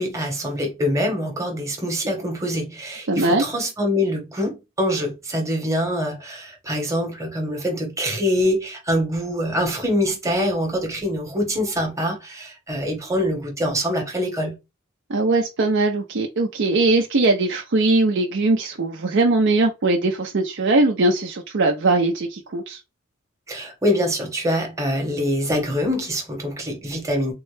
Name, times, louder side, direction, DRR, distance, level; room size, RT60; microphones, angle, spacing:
voice 1, 0.0-14.6 23.5-27.3, equal, 15° right, 1.0 m, -24 dB
voice 2, 3.1-3.5 15.1-22.8, right 2 dB, 60° right, 0.5 m, -20 dB
3.7 x 2.1 x 3.2 m
head